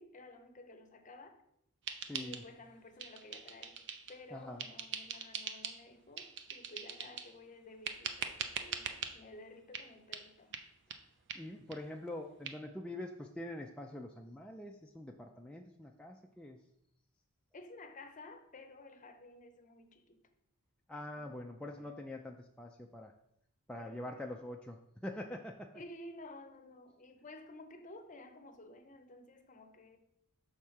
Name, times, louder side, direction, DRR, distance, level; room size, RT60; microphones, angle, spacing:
voice 1, 0.0-1.4 2.2-3.8 4.1-10.6 17.5-20.2 21.1-22.0 23.8-24.2 25.7-30.0, left 2 dB, 35° left, 0.7 m, -53 dB
sound 1, 1.9-2.7 3.0-4.2 4.6-5.8 6.2-7.3 7.8-9.1 9.7-9.9 10.1-10.2 10.5-10.6 10.9-11.0 11.3-11.4 11.7-11.8 12.1-12.2 12.4-12.5, right 7 dB, 55° right, 0.5 m, -42 dB
voice 2, 2.1-2.4 4.3-4.7 11.3-16.6 20.9-23.1 23.7-24.8 25.0-25.7, left 1 dB, 5° left, 0.3 m, -44 dB
6.3 x 3.6 x 5.6 m
head